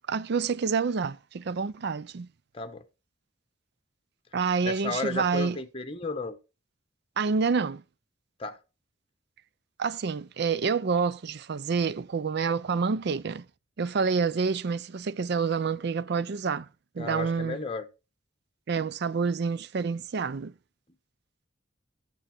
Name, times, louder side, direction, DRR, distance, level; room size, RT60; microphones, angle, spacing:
voice 1, 0.1-2.3 4.3-5.6 7.2-7.8 9.8-13.5 13.8-16.7 16.9-17.6 18.7-20.5, right 5 dB, 60° right, 0.5 m, -28 dB
voice 2, 2.5-2.8 4.6-6.4 8.4-8.6 17.0-17.9, left 3 dB, 30° left, 1.1 m, -34 dB
11.5 x 7.1 x 4.4 m
head